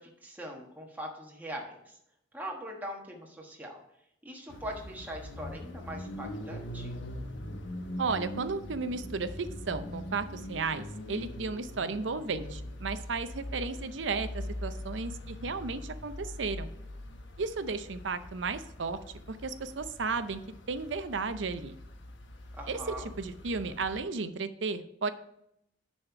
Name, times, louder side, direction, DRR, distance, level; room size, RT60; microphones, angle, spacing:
voice 1, 0.0-2.0 2.3-3.8 4.2-6.9 22.5-23.1, equal, 10° right, -1 dB, 1.3 m, -41 dB
sound 1, 4.5-24.0, left 1 dB, 90° left, 1.0 m, -42 dB
voice 2, 8.0-16.7 17.4-19.0 19.3-20.4 20.7-21.7 22.7-22.8 23.2-25.1, right 4 dB, 90° right, 11 dB, 0.6 m, -34 dB
10.0 x 4.3 x 5.7 m, 0.78 s
head